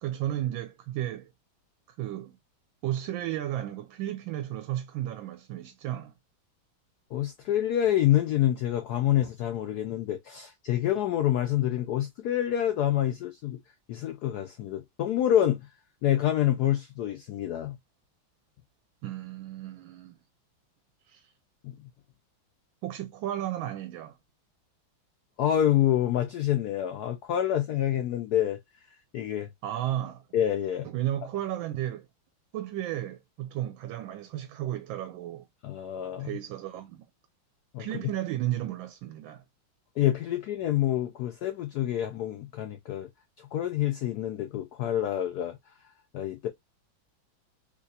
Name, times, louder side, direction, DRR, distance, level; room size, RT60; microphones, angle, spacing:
voice 1, 0.0-1.3 2.0-2.4 2.8-6.1 19.0-20.2 21.1-21.3 22.8-24.2 29.6-30.2 30.8-32.1 32.5-35.4 36.2-37.1 37.8-39.4, right 13 dB, 80° right, 1.3 m, -33 dB
voice 2, 7.1-13.6 13.9-15.6 16.0-17.8 21.6-21.7 25.4-28.6 29.1-29.5 30.3-30.9 35.6-36.4 37.7-37.9 40.0-43.1 43.4-45.6 46.1-46.5, left 11 dB, 80° left, 0.9 m, -27 dB
3.5 x 3.0 x 2.7 m
omnidirectional pair, 2.2 m